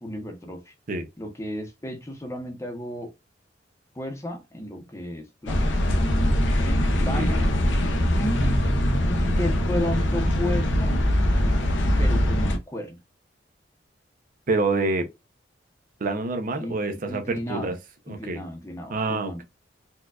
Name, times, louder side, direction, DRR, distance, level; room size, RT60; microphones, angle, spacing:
voice 1, 0.0-0.7 1.2-3.1 3.9-5.6 6.6-7.4 8.1-8.4 9.0-11.0 12.0-13.0 16.6-17.7 18.1-19.4, left 1 dB, 15° left, 0.8 m, -33 dB
sound 1, 5.5-12.6, equal, 85° left, 0.7 m, -22 dB
voice 2, 14.5-15.1 16.0-17.8 18.1-18.4 18.9-19.4, right 3 dB, 50° right, 0.6 m, -27 dB
4.3 x 2.3 x 2.3 m
head